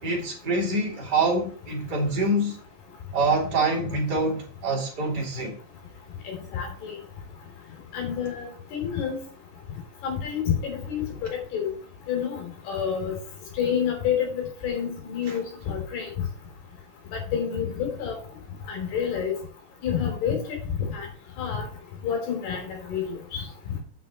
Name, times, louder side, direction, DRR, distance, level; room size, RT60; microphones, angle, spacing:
voice 1, 0.0-2.6 3.1-5.6, right 2 dB, 30° right, 2.8 m, -25 dB
voice 2, 6.3-7.0 7.9-9.2 10.0-11.0 11.3-11.7 12.1-13.1 13.6-16.1 17.1-18.2 18.7-19.3 19.8-20.4 20.9-21.1 21.4-21.7 22.0-23.0 23.3-23.4, left 8 dB, 70° left, 5.2 m, -28 dB
8.4 x 6.4 x 5.4 m
omnidirectional pair, 4.8 m